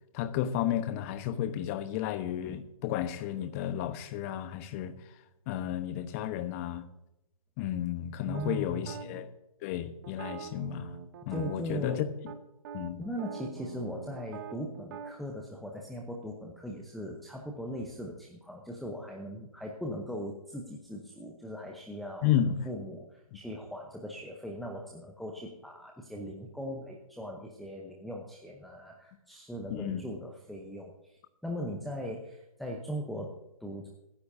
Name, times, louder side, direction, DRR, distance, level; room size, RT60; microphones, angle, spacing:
voice 1, 0.1-4.9 5.5-6.8 7.6-9.3 9.6-10.9 11.3-12.3 12.7-13.0 22.2-22.6 29.7-30.1, left 10 dB, 25° left, 1.0 m, -32 dB
voice 2, 8.2-9.2 11.3-12.1 13.0-22.3 22.6-33.9, equal, ahead, 0.8 m, -39 dB
sound 1, 8.3-9.1 10.0-12.0 12.3-12.4 12.6-15.1, right 7 dB, 35° right, 1.1 m, -44 dB
24.0 x 10.0 x 2.7 m
figure-of-eight pair, 135°, 18 cm